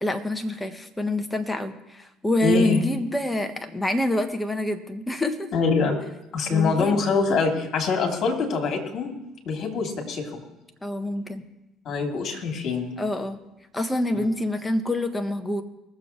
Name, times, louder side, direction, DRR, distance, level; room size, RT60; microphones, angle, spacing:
voice 1, 0.0-5.5 6.5-7.0 10.8-11.4 13.0-13.4 13.7-15.6, left 1 dB, 10° left, 7 dB, 1.4 m, -26 dB
voice 2, 2.4-2.8 5.5-6.0 6.3-9.1 9.4-10.4 11.8-12.9 14.1-14.2, left 4 dB, 50° left, 1 dB, 3.0 m, -24 dB
20.0 x 7.4 x 4.6 m, 0.93 s
hypercardioid pair, 55°, 0 cm